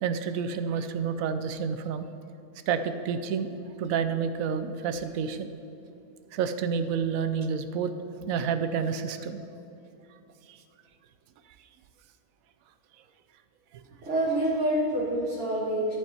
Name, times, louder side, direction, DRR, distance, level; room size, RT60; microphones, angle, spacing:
voice 1, 0.0-2.1 2.7-3.5 3.8-5.5 6.3-7.9 8.2-9.4 10.5-10.6 13.7-13.8, right 6 dB, 75° right, 10 dB, 1.0 m, -29 dB
voice 2, 14.0-15.9, right 1 dB, 55° right, -8 dB, 1.8 m, -27 dB
14.0 x 5.3 x 4.3 m, 2.8 s
omnidirectional pair, 1.6 m